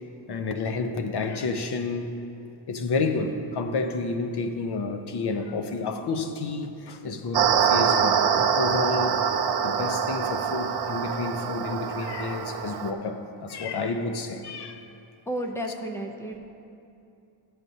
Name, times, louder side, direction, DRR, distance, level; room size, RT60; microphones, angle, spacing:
voice 1, 0.3-2.1 2.7-9.2 9.6-14.8, left 3 dB, 55° left, 6 dB, 0.6 m, -30 dB
sound 1, 7.3-12.9, right 7 dB, 55° right, 0.6 m, -25 dB
voice 2, 15.3-16.4, right 1 dB, 5° left, 3 dB, 0.4 m, -32 dB
13.5 x 7.9 x 2.7 m, 2.7 s
wide cardioid pair, 165°, 49 cm